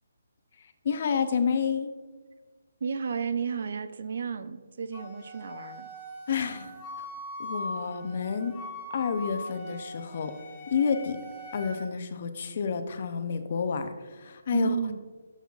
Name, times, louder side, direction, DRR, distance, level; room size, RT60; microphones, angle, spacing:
voice 1, 0.8-1.9 6.3-7.1 7.4-8.6 8.9-10.3 10.7-11.2 11.5-14.8, left 6 dB, 45° left, 9 dB, 0.5 m, -29 dB
voice 2, 2.8-5.9 14.5-15.0, right 6 dB, 55° right, 12 dB, 0.4 m, -32 dB
Wind instrument woodwind instrument, 4.9-11.8, left 1 dB, 15° left, 1.5 m, -41 dB
10.0 x 5.6 x 2.4 m, 1.4 s
hypercardioid pair, 165°, 0 cm